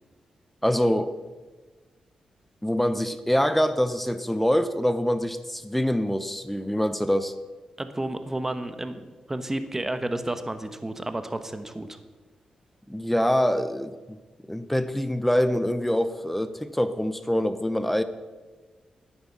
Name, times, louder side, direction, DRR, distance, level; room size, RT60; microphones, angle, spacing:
voice 1, 0.6-1.1 2.6-7.3 12.9-14.2 14.5-18.0, equal, 5° left, 11 dB, 0.8 m, -25 dB
voice 2, 7.8-12.0, right 1 dB, 20° right, 9 dB, 1.2 m, -31 dB
10.5 x 9.5 x 6.2 m, 1.3 s
cardioid pair, 70°, 2 cm